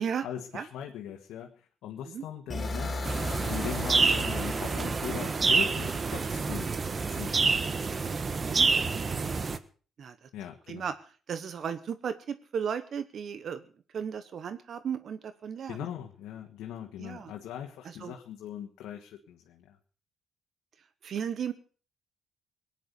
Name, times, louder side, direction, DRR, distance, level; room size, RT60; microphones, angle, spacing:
voice 1, 0.0-3.0 3.5-6.7 7.1-7.7 10.3-10.9 15.7-19.8, left 10 dB, 85° left, 2 dB, 1.6 m, -40 dB
sound 1, 2.5-6.4, left 1 dB, 25° left, 4.1 m, -37 dB
sound 2, 3.0-9.6, right 4 dB, 35° right, 1.3 m, -28 dB
voice 2, 8.5-9.0 10.0-10.3 10.7-10.9 11.3-13.6 13.9-15.8 17.0-17.3 17.8-18.1 21.0-21.5, right 7 dB, 60° right, 12 dB, 1.1 m, -35 dB
18.5 x 10.0 x 6.7 m, 0.41 s
cardioid pair, 90°, 0 cm